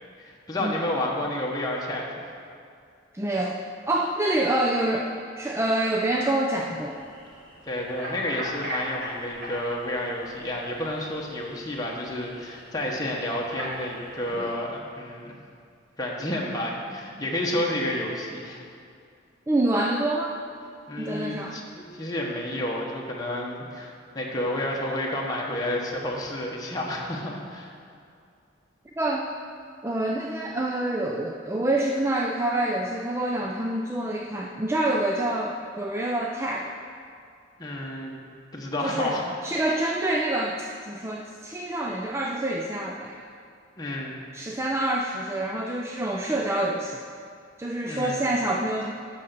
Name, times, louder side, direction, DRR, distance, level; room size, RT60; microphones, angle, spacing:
voice 1, 0.2-2.2 7.7-15.4 16.0-18.6 20.9-27.7 37.6-38.2 38.5-39.2 43.8-44.2 47.9-48.3, left 1 dB, 20° left, -3 dB, 1.1 m, -30 dB
voice 2, 3.1-3.6 3.9-7.0 14.3-14.5 19.5-20.4 21.0-21.6 29.0-29.3 29.8-36.8 38.8-39.2 39.4-43.2 44.3-47.0 47.6-48.9, right 1 dB, 15° right, 0 dB, 0.4 m, -27 dB
sound 1, 6.7-14.5, right 1 dB, 70° right, 2.6 m, -40 dB
8.2 x 6.4 x 6.7 m, 2.3 s
head